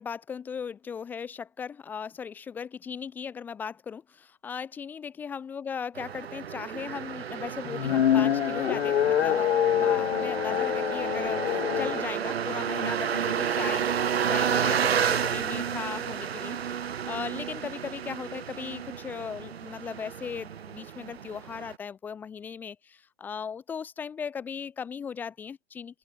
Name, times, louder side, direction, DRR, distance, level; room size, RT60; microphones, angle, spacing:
voice 1, 0.0-13.9 14.3-16.8 17.1-26.0, left 6 dB, 5° left, 1.4 m, -37 dB
sound 1, 6.0-21.8, right 8 dB, 55° right, 1.4 m, -31 dB
sound 2, 7.6-12.0, left 10 dB, 60° left, 0.5 m, -25 dB
open air
hypercardioid pair, 170°, 37 cm